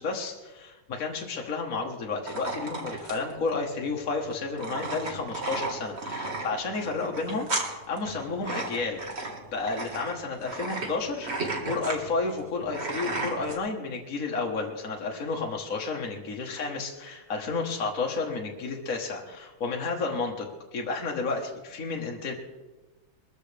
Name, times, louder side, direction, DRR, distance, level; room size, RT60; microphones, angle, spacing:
voice 1, 0.0-22.3, left 4 dB, 45° left, 0 dB, 1.7 m, -32 dB
sound 1, 2.3-13.6, right 2 dB, 30° right, 1.9 m, -34 dB
22.0 x 14.0 x 3.4 m, 1.2 s
omnidirectional pair, 2.3 m